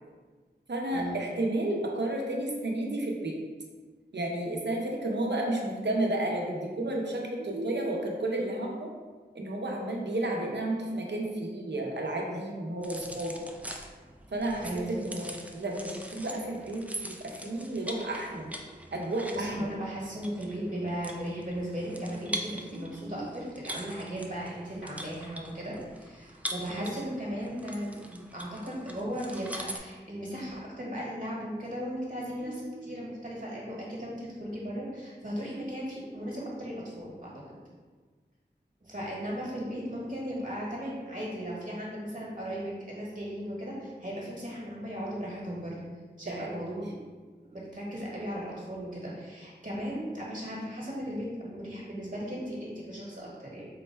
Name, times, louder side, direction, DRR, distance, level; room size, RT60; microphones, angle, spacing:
voice 1, 0.7-3.4 4.1-8.9 9.3-13.3 14.3-18.5 18.9-19.7 22.7-23.3 26.7-26.9 32.4-32.8 46.3-46.5, right 1 dB, 75° right, 0 dB, 0.7 m, -32 dB
sound 1, 12.8-29.8, equal, 10° right, 0.4 m, -43 dB
voice 2, 19.3-37.6 38.8-45.8 46.2-47.2 47.4-53.7, equal, 45° right, -5 dB, 1.3 m, -37 dB
3.8 x 2.2 x 4.4 m, 1.4 s
wide cardioid pair, 50°, 18 cm